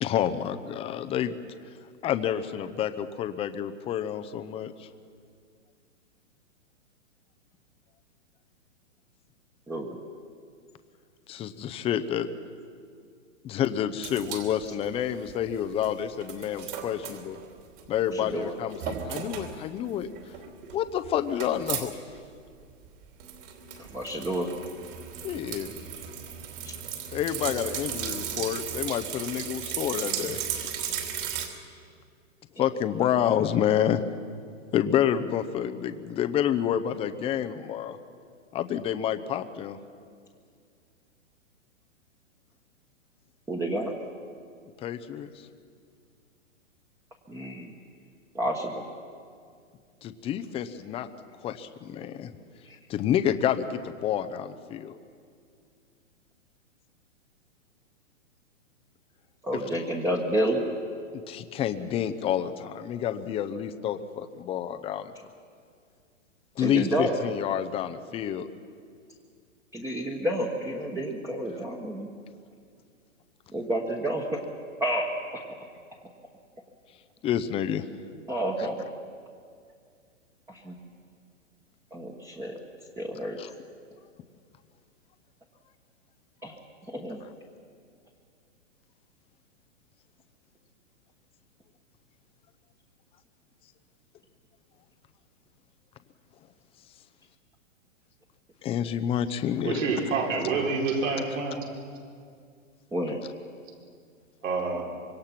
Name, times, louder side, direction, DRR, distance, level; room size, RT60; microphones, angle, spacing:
voice 1, 0.0-1.3 2.0-4.9 11.3-12.3 13.4-17.4 17.9-20.1 20.7-21.9 25.2-25.7 27.1-30.4 32.6-34.0 34.7-38.0 38.5-39.8 44.8-45.3 50.0-51.1 51.4-52.3 52.9-55.0 59.5-59.6 61.1-65.1 66.6-68.5 77.2-77.8 83.4-83.5 98.6-99.8, left 10 dB, 15° left, 10 dB, 0.7 m, -29 dB
voice 2, 9.7-10.0 18.1-18.5 23.8-24.5 26.6-26.7 43.5-43.9 47.3-47.7 48.3-48.8 52.7-52.8 59.4-60.7 66.6-67.1 69.7-72.1 73.5-74.5 74.8-75.4 78.3-78.8 80.5-80.7 81.9-82.6 83.0-83.4 86.4-86.6 86.9-87.2 102.9-103.2, right 1 dB, 5° right, -1 dB, 1.3 m, -30 dB
sound 1, 14.0-15.9 16.2-18.0 18.3-18.4 18.7-19.6 19.9-21.9 22.1-22.2 22.5-31.5, right 9 dB, 45° right, 3.2 m, -36 dB
voice 3, 99.6-101.6 104.4-104.9, right 4 dB, 75° right, -1 dB, 4.8 m, -27 dB
25.0 x 22.5 x 5.9 m, 2.2 s
hypercardioid pair, 140°, 38 cm